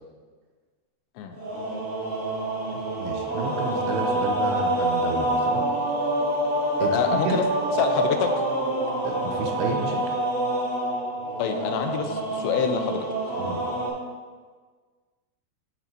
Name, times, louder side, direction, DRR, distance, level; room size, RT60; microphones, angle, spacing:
sound 1, 1.3-13.9, right 1 dB, 30° right, 2.3 m, -27 dB
voice 1, 2.7-5.7 6.8-7.4 9.0-10.2 13.4-13.6, right 4 dB, 80° right, 3 dB, 2.6 m, -31 dB
voice 2, 6.8-7.4 7.8-8.3 11.4-13.1, left 7 dB, 85° left, 5 dB, 3.0 m, -26 dB
13.0 x 6.3 x 2.8 m, 1.5 s
omnidirectional pair, 5.0 m